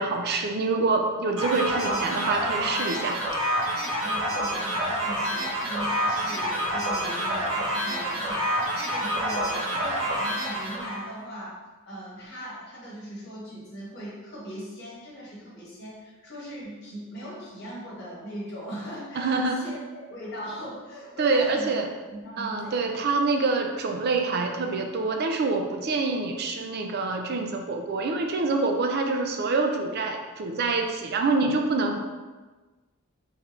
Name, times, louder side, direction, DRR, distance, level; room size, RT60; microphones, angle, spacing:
voice 1, 0.0-3.2 19.2-19.6 21.2-21.9 22.4-32.0, right 3 dB, 50° right, 3 dB, 0.4 m, -26 dB
sound 1, 1.4-11.1, equal, 80° right, 1.1 m, -28 dB
voice 2, 4.0-19.8 20.1-21.7 22.1-23.0, equal, 50° left, -6 dB, 1.4 m, -39 dB
3.6 x 3.4 x 3.1 m, 1.3 s
head